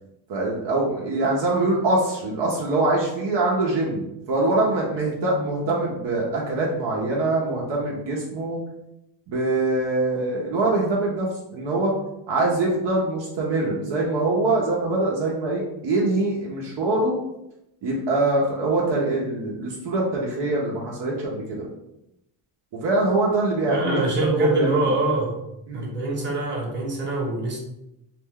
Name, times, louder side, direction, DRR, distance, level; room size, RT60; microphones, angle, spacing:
voice 1, 0.3-8.6 9.3-11.9 12.3-17.2 17.8-21.7 22.7-24.0 24.3-24.9 25.7-25.9, right 2 dB, 55° right, -3 dB, 0.8 m, -24 dB
voice 2, 23.7-25.4 25.7-27.6, right 2 dB, 20° right, -3 dB, 1.0 m, -24 dB
2.5 x 2.1 x 3.5 m, 0.86 s
supercardioid pair, 90°, 50 cm